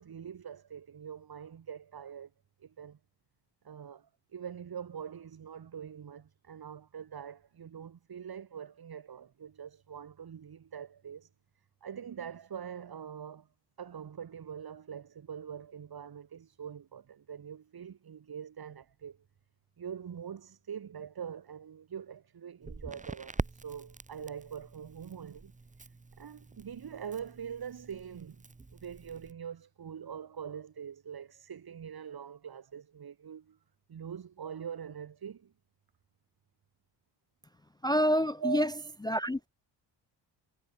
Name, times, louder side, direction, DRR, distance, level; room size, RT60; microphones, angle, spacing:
voice 1, 0.0-2.3 2.6-3.0 3.6-11.3 11.8-13.5 13.8-19.2 19.8-25.5 26.2-28.5 28.7-33.6 33.9-35.5 38.4-38.7, right 8 dB, 55° right, 2.6 m, -43 dB
Crackle, 22.6-29.3, right 3 dB, 15° right, 1.0 m, -44 dB
voice 2, 37.8-38.7 39.0-39.5, equal, 10° left, 0.3 m, -27 dB
cardioid pair, 95°, 43 cm